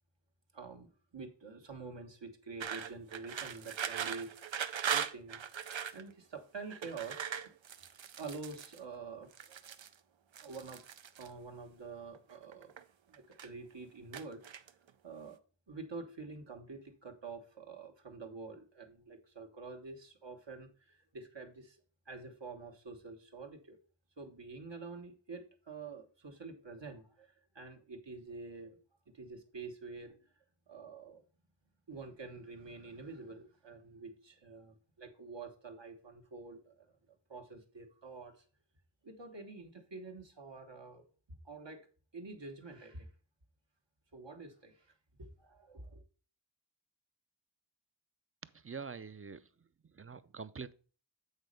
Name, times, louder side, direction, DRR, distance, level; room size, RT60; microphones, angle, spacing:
voice 1, 0.5-0.9 1.1-5.4 5.9-7.3 8.2-9.6 10.4-10.8 11.2-12.7 13.1-14.7 15.0-15.4 15.7-21.8 22.1-23.8 24.2-28.8 29.1-30.2 30.7-31.2 31.9-36.9 37.3-38.3 39.0-41.9 42.1-43.1 44.1-44.9 45.2-46.0, right 4 dB, 70° right, 1.4 m, -47 dB
sound 1, 2.6-6.0 6.7-8.8 9.3-9.9 10.3-11.3 12.1-12.8 13.1-13.7 14.1-14.9, right 8 dB, 90° right, 0.6 m, -39 dB
voice 2, 48.6-49.4 50.0-50.7, right 5 dB, 30° right, 0.4 m, -44 dB
8.1 x 4.2 x 5.1 m
wide cardioid pair, 50°, 45 cm